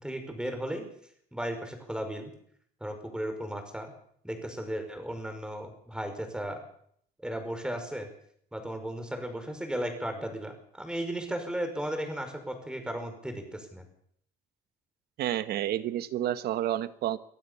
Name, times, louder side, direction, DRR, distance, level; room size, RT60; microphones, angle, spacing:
voice 1, 0.0-0.8 1.3-2.3 2.8-3.9 4.2-6.6 7.2-8.1 8.5-13.9, right 1 dB, 5° right, 6 dB, 5.5 m, -35 dB
voice 2, 15.2-17.2, right 12 dB, 70° right, 14 dB, 1.2 m, -30 dB
24.5 x 15.5 x 7.1 m, 0.66 s
cardioid pair, 110°, 17 cm